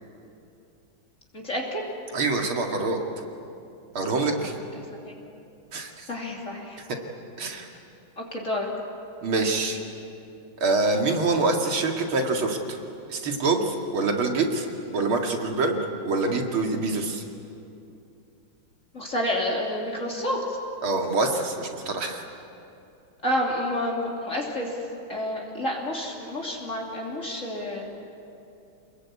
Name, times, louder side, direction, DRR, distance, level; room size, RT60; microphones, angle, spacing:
voice 1, 1.3-1.8 5.0-5.1 6.1-6.8 8.2-8.7 18.9-20.6 23.2-24.7 25.1-28.0, left 1 dB, 35° left, -2 dB, 3.2 m, -29 dB
voice 2, 2.1-3.0 3.9-4.5 5.7-6.1 7.4-7.7 9.2-9.8 10.6-12.8 13.1-14.7 14.9-15.8 16.0-17.2 20.8-22.2, right 3 dB, 75° right, 2 dB, 3.1 m, -25 dB
28.5 x 21.0 x 8.5 m, 2.7 s
omnidirectional pair, 2.3 m